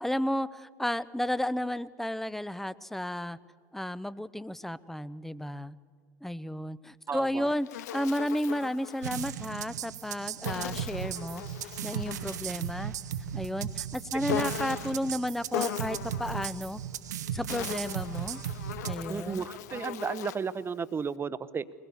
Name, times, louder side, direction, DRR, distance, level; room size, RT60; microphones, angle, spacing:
voice 1, 0.0-3.4 3.7-5.7 6.2-12.9 13.3-16.8 17.3-18.4 18.8-19.5, equal, 5° left, 18 dB, 0.7 m, -33 dB
voice 2, 7.1-7.5 14.1-14.2 19.1-21.6, right 6 dB, 25° right, 16 dB, 0.9 m, -33 dB
Insect, 7.2-9.4 10.4-12.5 14.3-15.1 15.5-16.7 17.3-20.5, left 12 dB, 75° left, 0.8 m, -38 dB
sound 1, 9.0-19.0, right 9 dB, 85° right, 1.0 m, -36 dB
22.0 x 20.5 x 7.0 m, 2.1 s
hypercardioid pair, 80°, 9 cm